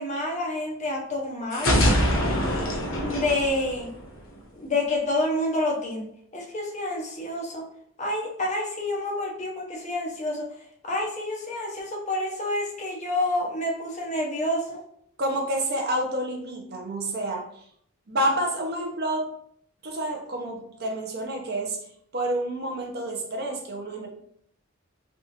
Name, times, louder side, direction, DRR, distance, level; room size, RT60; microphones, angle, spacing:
voice 1, 0.0-1.8 3.0-3.9 4.5-6.1 6.3-7.7 8.0-10.5 10.8-14.8, left 1 dB, 35° left, -1 dB, 0.8 m, -28 dB
sound 1, 1.5-4.4, equal, 85° left, 0.8 m, -24 dB
voice 2, 15.2-17.4 18.1-19.3 19.8-21.8 22.1-24.1, right 1 dB, 55° right, 2 dB, 0.7 m, -28 dB
3.5 x 2.5 x 2.9 m, 0.67 s
head